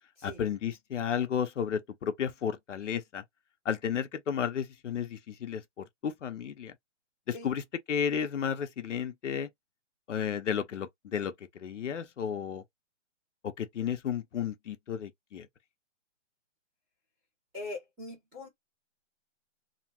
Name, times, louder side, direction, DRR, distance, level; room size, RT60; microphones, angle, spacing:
voice 1, 0.2-3.2 3.6-6.7 7.3-7.6 7.9-9.5 10.1-12.6 13.4-15.5, left 8 dB, 70° left, 0.9 m, -33 dB
voice 2, 17.5-18.5, left 2 dB, 5° right, 0.6 m, -41 dB
2.9 x 2.3 x 2.8 m
hypercardioid pair, 170°, 38 cm